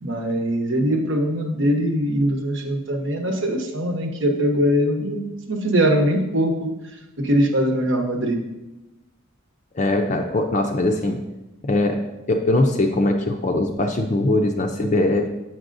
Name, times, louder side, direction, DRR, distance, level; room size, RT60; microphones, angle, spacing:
voice 1, 0.0-5.2 5.5-6.7 7.2-8.4, equal, 65° right, 3 dB, 0.9 m, -21 dB
voice 2, 9.7-11.2 11.6-12.0 12.3-15.3, left 2 dB, 35° left, 3 dB, 0.5 m, -21 dB
7.4 x 6.0 x 2.6 m, 0.98 s
head